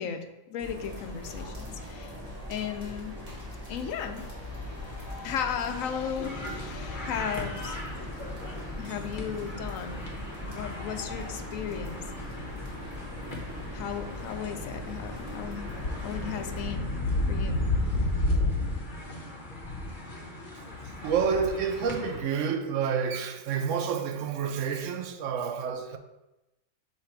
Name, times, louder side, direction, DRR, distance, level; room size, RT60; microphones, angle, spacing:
voice 1, 0.0-2.1 2.5-3.1 3.7-7.9 8.8-12.0 13.7-15.7 16.0-16.9 17.3-17.6, left 8 dB, 75° left, 1.0 m, -36 dB
sound 1, 0.6-1.3 1.7-6.9 7.3-8.7 9.0-13.4, right 2 dB, ahead, 1.3 m, -49 dB
sound 2, 0.6-16.7, left 1 dB, 25° right, 1.8 m, -41 dB
sound 3, 6.2-22.2, left 2 dB, 40° left, 1.1 m, -34 dB
voice 2, 21.0-26.0, right 6 dB, 70° right, 0.8 m, -29 dB
6.5 x 3.3 x 4.4 m
omnidirectional pair, 1.5 m